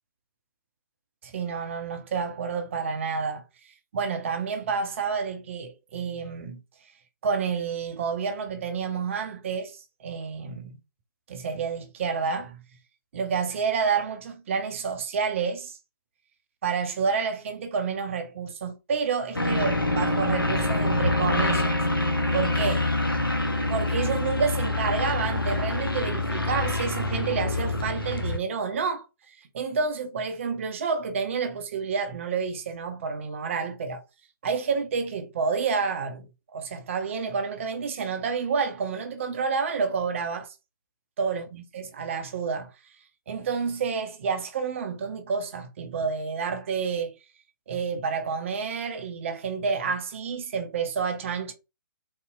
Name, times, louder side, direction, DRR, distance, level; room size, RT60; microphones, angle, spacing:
voice 1, 1.2-6.6 7.2-10.8 11.3-12.6 13.1-15.8 16.6-21.8 22.3-22.9 23.2-23.3 23.7-34.0 34.4-40.5 41.2-42.7 43.3-47.2 47.7-51.5, right 5 dB, 35° right, 0.5 m, -29 dB
sound 1, 19.4-28.4, left 2 dB, 85° left, 0.7 m, -26 dB
3.5 x 2.7 x 2.3 m
figure-of-eight pair, 135°, 11 cm